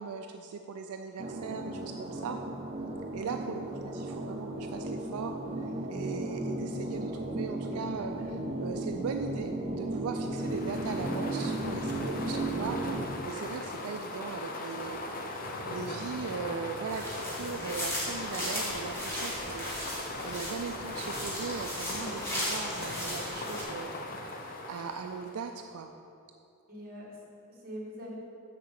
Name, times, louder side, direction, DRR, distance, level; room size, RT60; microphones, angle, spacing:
voice 1, 0.0-2.4 3.1-15.0 15.5-19.9 20.2-23.9 24.2-25.9, right 5 dB, 80° right, 5 dB, 0.4 m, -39 dB
sound 1, 1.2-13.1, right 1 dB, 25° right, 0.5 m, -35 dB
sound 2, 10.2-25.6, left 2 dB, 40° left, 0.7 m, -39 dB
Footsteps Leaves, 16.9-23.6, equal, 10° left, 1.7 m, -37 dB
voice 2, 26.7-28.1, equal, 40° right, -4 dB, 1.8 m, -44 dB
6.5 x 4.9 x 6.8 m, 2.7 s
head